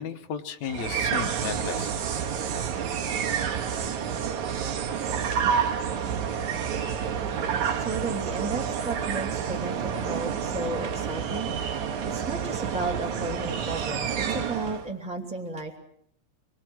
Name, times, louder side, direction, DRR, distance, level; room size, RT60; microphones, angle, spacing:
voice 1, 0.0-2.4, left 7 dB, 65° left, 8 dB, 2.5 m, -35 dB
sound 1, 0.6-14.9, right 7 dB, 70° right, 2.8 m, -29 dB
voice 2, 7.7-15.8, right 3 dB, ahead, 0 dB, 2.4 m, -34 dB
27.5 x 21.0 x 6.3 m, 0.69 s
omnidirectional pair, 3.6 m